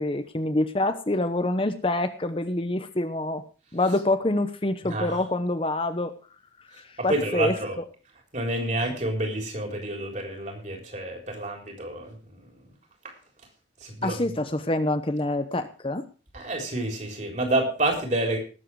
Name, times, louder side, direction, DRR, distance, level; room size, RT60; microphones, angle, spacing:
voice 1, 0.0-3.4 3.7-6.1 6.8-7.6 14.0-16.1, left 2 dB, 30° left, 9 dB, 0.9 m, -26 dB
voice 2, 4.8-5.2 7.0-7.8 8.3-12.5 13.0-13.1 13.8-14.2 16.3-18.4, right 1 dB, 40° right, 2 dB, 3.8 m, -29 dB
19.0 x 7.5 x 4.8 m, 0.37 s
head